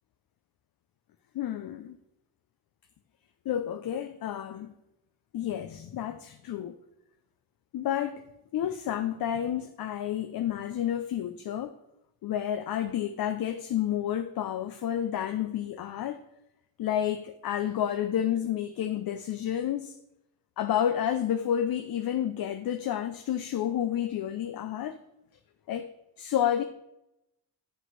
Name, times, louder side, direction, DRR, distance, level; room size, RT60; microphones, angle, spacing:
voice 1, 1.3-2.0 3.5-4.7 5.3-6.8 7.7-8.3 8.5-11.7 12.2-16.2 16.8-20.0 20.6-25.0 25.7-25.9 26.2-26.6, left 10 dB, 70° left, 0.6 m, -30 dB
8.0 x 5.5 x 5.7 m
cardioid pair, 110°, 37 cm